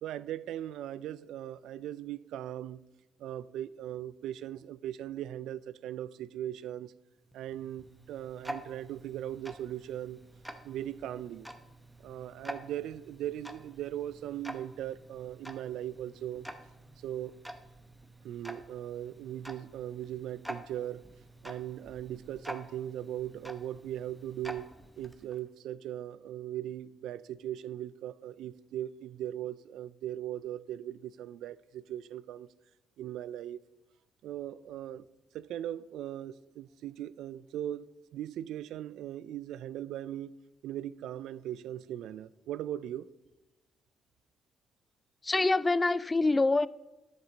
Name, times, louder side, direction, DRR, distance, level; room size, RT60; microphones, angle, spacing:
voice 1, 0.0-2.8 3.2-6.9 7.3-10.2 10.6-11.5 12.0-16.5 17.0-17.3 18.2-21.0 21.4-24.7 25.0-32.5 33.0-33.6 34.2-35.1 35.3-37.9 38.1-40.4 40.6-43.1, right 11 dB, 85° right, 0.3 m, -39 dB
Tick-tock, 7.2-25.5, right 1 dB, 5° right, 0.9 m, -48 dB
voice 2, 45.2-46.7, left 3 dB, 20° left, 0.3 m, -25 dB
11.0 x 7.2 x 4.0 m
cardioid pair, 90°, 0 cm